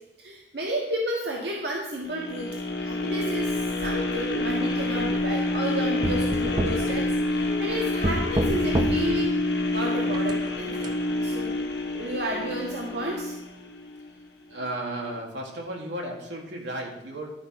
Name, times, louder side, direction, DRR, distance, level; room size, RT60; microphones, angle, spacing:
voice 1, 0.2-3.5 3.8-9.4 9.7-10.9 11.2-11.5 11.9-13.3, equal, 65° right, -1 dB, 1.4 m, -31 dB
sound 1, 2.1-14.2 14.6-14.7, left 2 dB, 75° left, 1.3 m, -28 dB
sound 2, 3.8-4.5 5.0-5.7 6.0-7.6 8.0-9.3 10.1-10.9, right 1 dB, 25° right, 0.7 m, -30 dB
voice 2, 14.5-17.3, right 1 dB, 85° right, 0 dB, 1.9 m, -34 dB
11.5 x 4.7 x 5.8 m, 0.96 s
head